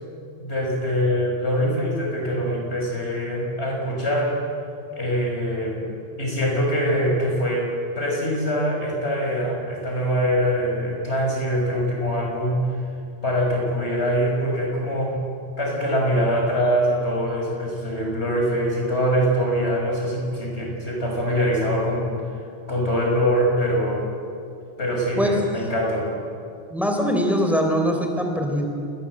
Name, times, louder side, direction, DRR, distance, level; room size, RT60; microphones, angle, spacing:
voice 1, 0.4-4.4 4.9-5.9 6.2-12.6 13.2-15.2 15.6-22.1 22.7-24.0 24.8-26.1, equal, 85° left, -1 dB, 6.6 m, -23 dB
voice 2, 26.7-28.7, equal, ahead, 2 dB, 3.7 m, -22 dB
29.0 x 20.0 x 7.8 m, 2.4 s
omnidirectional pair, 1.1 m